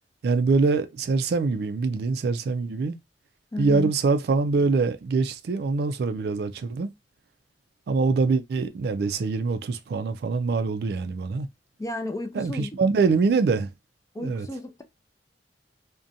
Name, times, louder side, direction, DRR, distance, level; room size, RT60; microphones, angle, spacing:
voice 1, 0.2-3.0 3.6-6.9 7.9-11.5 12.3-13.7 14.2-14.5, right 4 dB, 60° right, 0.3 m, -24 dB
voice 2, 3.5-3.9 11.8-12.7 14.1-14.8, left 1 dB, 20° left, 0.4 m, -33 dB
2.5 x 2.1 x 2.6 m
head